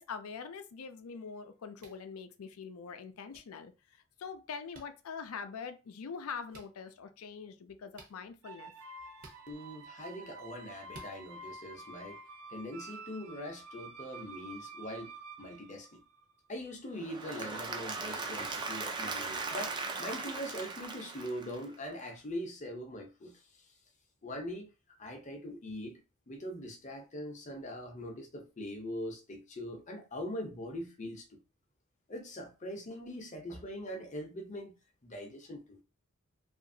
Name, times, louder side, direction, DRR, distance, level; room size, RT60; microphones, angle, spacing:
voice 1, 0.0-8.7, left 6 dB, 85° left, 0.4 m, -44 dB
sound 1, 1.8-2.0 3.3-3.4 4.7-4.9 6.5-6.7 7.9-8.2 9.2-9.4 10.9-11.1, right 2 dB, 40° right, 0.7 m, -52 dB
sound 2, 8.4-16.4, right 3 dB, 80° right, 0.5 m, -49 dB
voice 2, 9.5-12.2 12.5-15.1 15.4-16.0 16.5-23.4 24.2-24.7 25.0-26.0 26.3-31.4 32.1-34.7 35.0-35.8, equal, 35° left, 0.6 m, -42 dB
Applause / Crowd, 16.9-21.9, right 4 dB, 20° right, 0.3 m, -38 dB
2.8 x 2.5 x 2.6 m
head